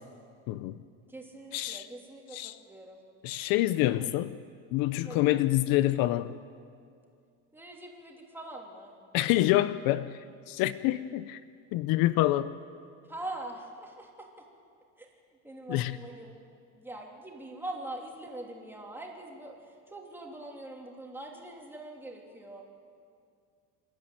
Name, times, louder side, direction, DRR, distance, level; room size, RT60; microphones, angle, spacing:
voice 1, 0.5-0.8 1.5-1.8 2.3-2.5 3.2-4.4 4.7-6.4 9.1-11.4 11.7-12.6 15.7-16.0, left 15 dB, 70° left, 14 dB, 0.7 m, -27 dB
voice 2, 1.1-3.0 4.0-4.1 5.0-5.4 7.5-9.0 13.1-14.4 15.0-15.1 15.4-16.3 16.7-22.6, right 1 dB, 5° right, -1 dB, 3.2 m, -43 dB
27.5 x 12.0 x 9.3 m, 2.3 s
cardioid pair, 140°, 36 cm